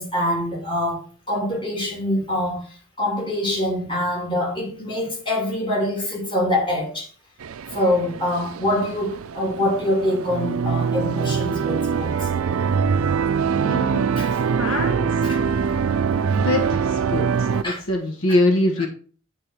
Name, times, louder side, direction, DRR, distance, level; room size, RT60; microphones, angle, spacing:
voice 1, 0.0-2.6 3.0-7.1 7.7-12.3 14.2-14.3 15.2-15.4 17.5-17.8 18.3-18.4, left 1 dB, 25° left, 3.1 m, -24 dB
sound 1, 7.4-17.6, right 6 dB, 80° right, 0.4 m, -23 dB
voice 2, 13.6-14.0 14.6-15.1 16.3-18.9, left 1 dB, 75° left, 1.4 m, -23 dB
8.9 x 3.7 x 6.0 m
head